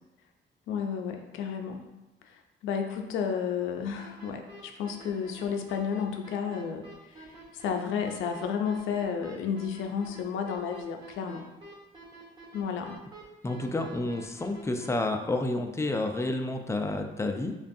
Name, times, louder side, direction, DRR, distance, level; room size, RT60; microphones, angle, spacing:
voice 1, 0.7-1.9 2.2-11.4 12.5-13.0, left 7 dB, 85° left, 4 dB, 0.4 m, -32 dB
sound 1, 4.0-14.9, right 2 dB, 20° right, 1.4 m, -48 dB
voice 2, 13.4-17.5, left 2 dB, 15° left, 5 dB, 0.3 m, -30 dB
5.0 x 2.3 x 2.6 m, 1.0 s
cardioid pair, 90°, 20 cm